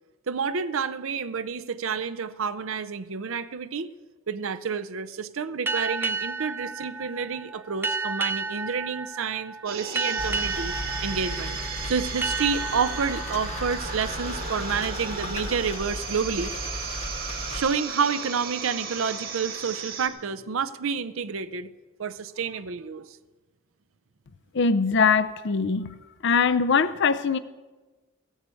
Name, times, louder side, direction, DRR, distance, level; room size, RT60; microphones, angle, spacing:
voice 1, 0.3-3.9 4.3-10.7 11.0-16.5 17.5-21.7 22.0-23.2, right 6 dB, 70° right, 12 dB, 0.6 m, -29 dB
sound 1, 5.7-14.9, right 3 dB, 10° right, 0.4 m, -32 dB
sound 2, 9.7-20.1, right 6 dB, 45° right, 1.4 m, -35 dB
sound 3, 10.2-17.6, left 2 dB, 30° left, 0.9 m, -36 dB
voice 2, 24.5-25.9 26.2-27.4, left 5 dB, 55° left, 14 dB, 0.6 m, -22 dB
15.0 x 7.3 x 8.3 m, 1.2 s
head